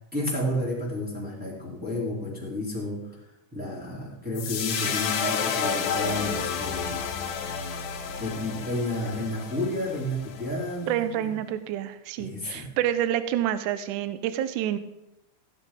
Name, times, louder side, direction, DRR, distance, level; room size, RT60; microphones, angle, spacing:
voice 1, 0.1-3.0 3.5-6.9 8.2-11.3 12.2-12.7, left 1 dB, 5° right, -7 dB, 2.7 m, -31 dB
sound 1, 4.4-10.8, left 6 dB, 65° left, 2.4 m, -31 dB
voice 2, 10.9-14.8, right 11 dB, 80° right, 11 dB, 1.9 m, -28 dB
15.5 x 8.2 x 3.7 m, 0.87 s
omnidirectional pair, 4.2 m